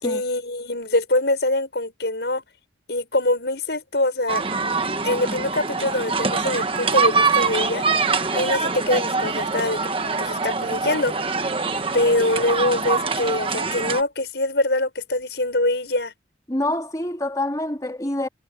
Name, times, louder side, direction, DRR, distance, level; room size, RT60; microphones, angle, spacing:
voice 1, 0.0-2.4 2.9-4.4 5.0-7.8 8.3-9.8 10.2-11.2 11.9-16.1, left 2 dB, 70° left, 6.4 m, -24 dB
sound 1, 4.3-14.0, right 4 dB, 30° right, 1.3 m, -24 dB
voice 2, 16.5-18.3, left 1 dB, 20° left, 2.7 m, -26 dB
head